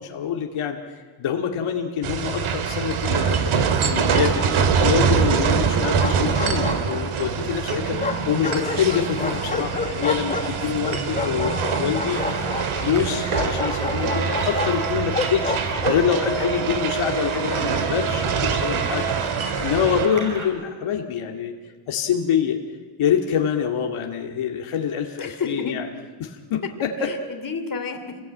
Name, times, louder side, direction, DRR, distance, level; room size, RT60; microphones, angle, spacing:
voice 1, 0.0-12.2 12.8-19.1 19.6-21.5 21.9-22.6 23.0-25.9 26.2-27.1, left 8 dB, 75° left, 2 dB, 2.3 m, -25 dB
sound 1, 2.0-20.1, right 6 dB, 75° right, 2.4 m, -24 dB
Bark, 3.9-4.8 5.7-7.3 8.0-16.1, left 3 dB, 15° left, 1.6 m, -30 dB
voice 2, 5.5-5.9 7.7-8.4 20.0-20.2 25.2-25.8 27.0-28.2, left 5 dB, 40° left, 6 dB, 3.0 m, -32 dB
sound 2, 12.1-20.5, right 2 dB, 35° right, 6.2 m, -36 dB
27.5 x 20.5 x 9.0 m, 1.5 s
cardioid pair, 135°, 50 cm